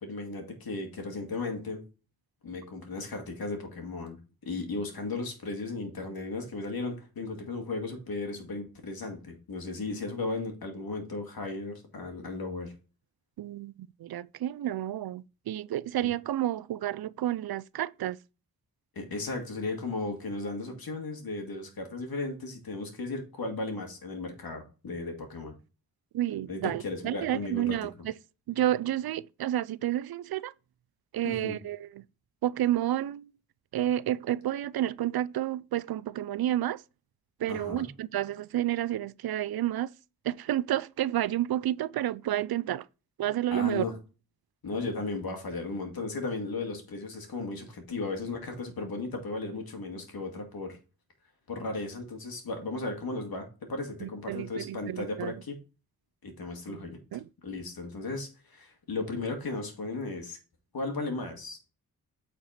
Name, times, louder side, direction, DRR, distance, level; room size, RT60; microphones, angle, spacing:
voice 1, 0.0-1.8 2.4-4.2 4.5-12.7 16.0-16.1 19.0-25.6 26.5-27.8 31.2-31.6 37.5-37.9 43.5-44.0 44.6-50.8 51.5-55.6 56.2-57.0 57.4-60.4 60.7-61.6, left 3 dB, 75° left, 2.3 m, -35 dB
voice 2, 13.4-18.2 26.1-28.1 28.5-30.5 31.1-32.0 32.4-33.3 33.7-36.8 37.4-39.9 40.2-42.9 43.2-43.9 54.0-55.4 56.7-57.3, right 13 dB, 75° right, 0.5 m, -30 dB
8.7 x 4.5 x 4.3 m
wide cardioid pair, 85°, 37 cm